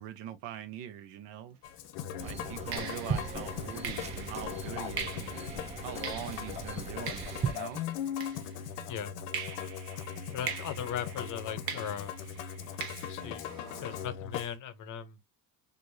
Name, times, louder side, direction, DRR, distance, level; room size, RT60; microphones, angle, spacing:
voice 1, 0.0-1.6 2.2-5.3 5.8-7.9, right 10 dB, 80° right, 0.7 m, -42 dB
Musical instrument, 1.6-14.5, left 8 dB, 80° left, 0.7 m, -39 dB
sound 1, 1.6-1.8 2.7-8.9 9.3-14.1, right 6 dB, 55° right, 1.0 m, -43 dB
sound 2, 2.2-7.6, right 6 dB, 15° right, 0.4 m, -39 dB
voice 2, 10.3-12.1 13.1-15.2, left 8 dB, 45° left, 0.7 m, -38 dB
4.5 x 2.5 x 2.6 m
cardioid pair, 120°, 42 cm